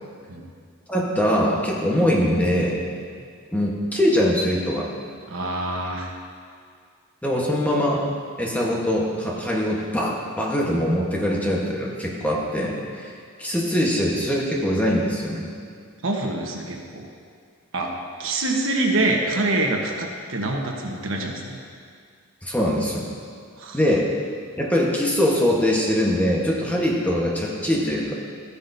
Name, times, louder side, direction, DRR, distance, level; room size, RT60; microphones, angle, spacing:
voice 1, 0.9-2.8 3.5-4.9 7.2-8.0 8.4-13.1 13.4-15.5 22.4-23.1 23.7-24.1 24.6-28.1, equal, 5° left, -4 dB, 1.1 m, -22 dB
voice 2, 5.3-6.1 16.0-17.1 17.7-17.9 18.2-21.6 23.6-23.8, right 2 dB, 70° right, 1 dB, 1.1 m, -25 dB
13.5 x 9.7 x 2.7 m, 2.2 s
head